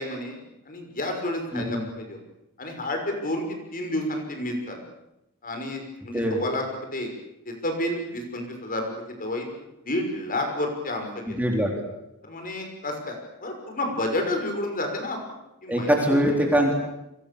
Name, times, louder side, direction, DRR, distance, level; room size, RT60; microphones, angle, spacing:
voice 1, 0.0-2.2 2.6-3.5 3.7-4.8 5.4-7.1 7.5-9.5 9.9-11.4 12.2-15.4 15.6-16.2 16.7-16.8, left 1 dB, 40° left, 4 dB, 6.0 m, -30 dB
voice 2, 1.5-1.9 6.1-6.4 11.3-11.7 15.7-16.7, equal, 5° right, 1 dB, 4.0 m, -23 dB
30.0 x 24.5 x 7.1 m, 0.88 s
head